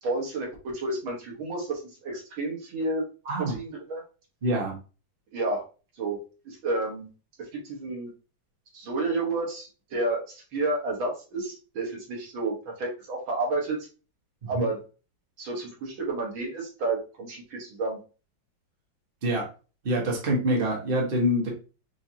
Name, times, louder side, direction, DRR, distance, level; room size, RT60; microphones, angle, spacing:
voice 1, 0.0-3.1 3.4-4.0 5.3-5.6 6.0-6.2 6.5-7.1 7.5-8.1 8.7-13.9 14.5-14.8 15.4-18.0, right 2 dB, 90° right, -1 dB, 2.3 m, -30 dB
voice 2, 4.4-4.7 14.4-14.6 19.2-19.4 19.8-21.5, equal, 30° right, -1 dB, 1.3 m, -25 dB
5.5 x 2.8 x 2.8 m, 0.34 s
omnidirectional pair, 2.1 m